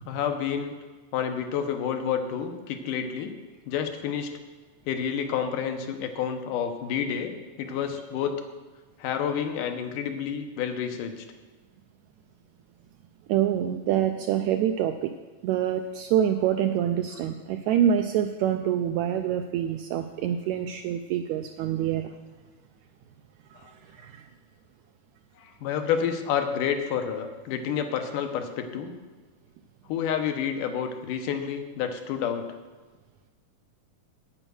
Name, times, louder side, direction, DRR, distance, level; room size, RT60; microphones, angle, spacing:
voice 1, 0.1-0.7 1.1-3.3 3.7-4.3 4.9-8.4 9.0-11.3 23.6-23.7 25.4-28.9 29.9-32.6, left 8 dB, 90° left, 6 dB, 2.5 m, -29 dB
voice 2, 13.3-15.1 15.4-22.1 23.6-24.3, right 10 dB, 80° right, 6 dB, 1.7 m, -26 dB
9.0 x 8.9 x 6.2 m, 1.3 s
omnidirectional pair, 3.7 m